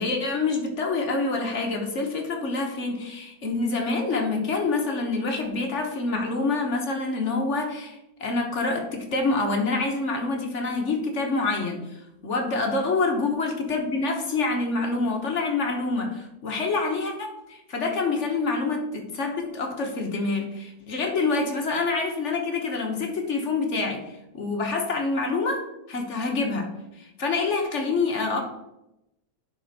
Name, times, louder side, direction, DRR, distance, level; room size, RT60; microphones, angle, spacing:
voice 1, 0.0-26.7 27.0-28.4, left 3 dB, 45° left, 2 dB, 1.2 m, -27 dB
10.5 x 4.3 x 4.1 m, 0.90 s
omnidirectional pair, 2.0 m